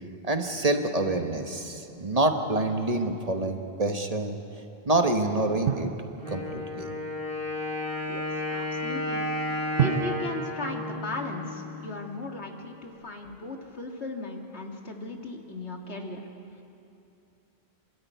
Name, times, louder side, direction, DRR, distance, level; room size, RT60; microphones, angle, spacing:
voice 1, 0.2-4.4 4.9-5.9 6.3-6.9, right 2 dB, 35° right, 5 dB, 1.3 m, -27 dB
Drum, 5.7-7.2 9.8-12.0, right 8 dB, 60° right, 0.9 m, -32 dB
Wind instrument woodwind instrument, 6.2-11.9, left 1 dB, 60° left, 7.6 m, -33 dB
voice 2, 8.1-9.3 9.8-16.3, left 2 dB, 85° left, 2 dB, 2.2 m, -37 dB
26.5 x 13.0 x 9.3 m, 2.7 s
omnidirectional pair, 1.1 m